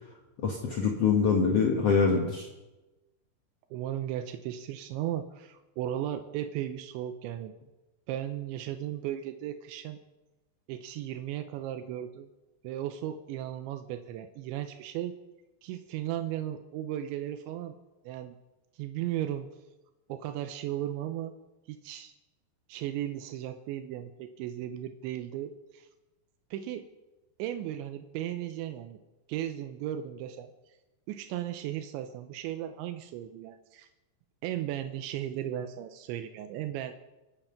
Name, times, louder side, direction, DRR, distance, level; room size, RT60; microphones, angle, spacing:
voice 1, 0.4-2.5, left 5 dB, 65° left, 1 dB, 1.5 m, -24 dB
voice 2, 3.7-7.5 8.1-10.0 10.7-12.3 12.6-15.2 15.6-17.8 18.1-18.4 18.8-19.5 20.1-21.3 21.7-22.1 22.7-25.9 26.5-26.9 27.4-29.0 29.3-30.5 31.1-33.9 34.4-36.9, right 12 dB, 85° right, 8 dB, 3.1 m, -36 dB
26.0 x 9.2 x 5.8 m, 1.1 s
omnidirectional pair, 5.2 m